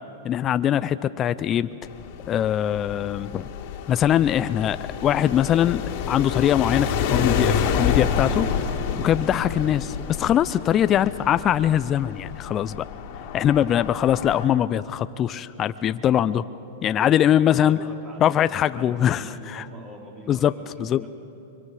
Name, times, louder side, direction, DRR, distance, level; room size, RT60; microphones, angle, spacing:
voice 1, 0.2-1.7 2.3-3.5 3.9-8.5 9.0-12.9 13.3-16.4 16.8-17.8 18.2-19.6 20.3-20.5 20.8-21.1, left 10 dB, 30° left, 14 dB, 0.4 m, -22 dB
sound 1, 1.8-14.4, left 7 dB, 55° left, 2.0 m, -28 dB
voice 2, 16.9-21.1, right 1 dB, 30° right, -1 dB, 4.5 m, -43 dB
24.0 x 23.5 x 4.9 m, 3.0 s
hypercardioid pair, 130°, 0 cm